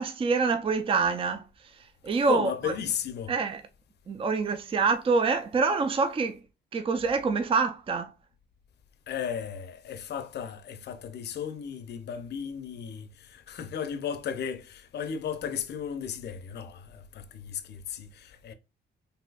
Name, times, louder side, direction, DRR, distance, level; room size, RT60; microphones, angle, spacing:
voice 1, 0.0-1.4 2.0-2.5 3.3-3.6 4.1-6.4 6.7-8.1, right 4 dB, 25° right, 0.4 m, -26 dB
voice 2, 2.1-3.3 9.1-18.5, left 8 dB, 60° left, 0.6 m, -35 dB
4.0 x 2.7 x 2.3 m
cardioid pair, 90°, 20 cm